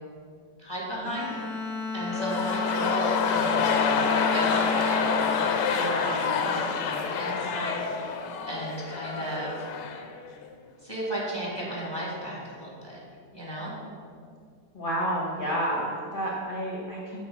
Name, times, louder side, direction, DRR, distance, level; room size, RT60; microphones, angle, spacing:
voice 1, 0.6-7.8 8.5-9.7 10.8-13.0 13.3-13.7, right 1 dB, 15° right, -5 dB, 1.6 m, -34 dB
Bowed string instrument, 1.0-6.6, left 4 dB, 15° left, 0.8 m, -33 dB
sound 1, 2.1-10.2 10.4-10.5, left 6 dB, 80° left, 1.3 m, -27 dB
voice 2, 14.7-17.3, equal, 40° left, -3 dB, 0.9 m, -30 dB
8.6 x 3.4 x 6.7 m, 2.2 s
omnidirectional pair, 1.9 m